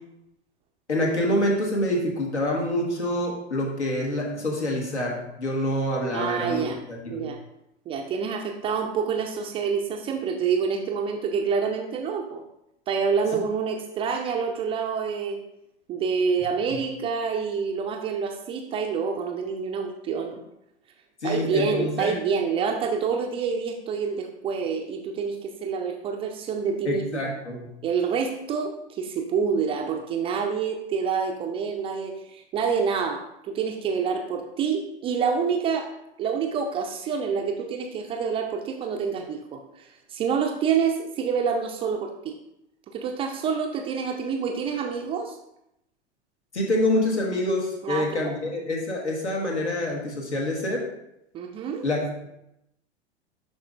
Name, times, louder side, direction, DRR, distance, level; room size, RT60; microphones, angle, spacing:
voice 1, 0.9-7.3 16.7-16.8 21.2-22.1 26.8-27.7 46.5-50.9 51.8-52.3, left 1 dB, 75° left, -1 dB, 1.7 m, -26 dB
voice 2, 6.1-6.8 7.1-7.4 7.9-12.4 12.9-15.4 15.9-20.4 21.2-27.3 27.8-35.9 36.2-42.3 42.9-45.4 47.8-48.3 51.3-51.8, right 6 dB, 15° right, 3 dB, 0.4 m, -27 dB
11.5 x 4.1 x 2.5 m, 0.82 s
figure-of-eight pair, 95°, 34 cm